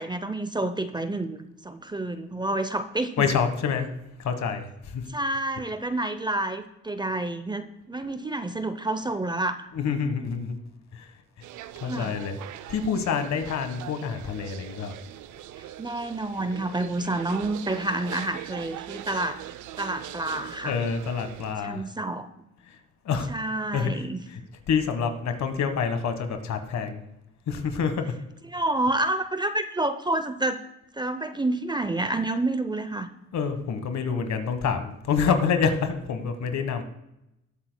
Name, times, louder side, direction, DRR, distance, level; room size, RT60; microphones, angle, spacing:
voice 1, 0.0-3.3 5.1-9.7 11.8-12.2 15.6-19.4 19.8-20.8 21.6-22.3 23.3-24.2 28.5-30.6 30.9-33.1, right 2 dB, 15° right, 10 dB, 0.6 m, -29 dB
voice 2, 3.2-3.9 4.2-5.1 9.7-10.6 10.9-11.1 11.8-12.4 12.7-15.0 20.6-21.8 22.7-22.8 23.0-23.3 23.7-24.0 24.3-24.4 24.7-27.0 27.5-28.2 33.3-36.8, left 6 dB, 65° left, 8 dB, 1.4 m, -27 dB
sound 1, 11.4-21.5, right 13 dB, 75° right, 0.5 m, -42 dB
19.0 x 8.2 x 2.2 m, 0.88 s
cardioid pair, 90°, 30 cm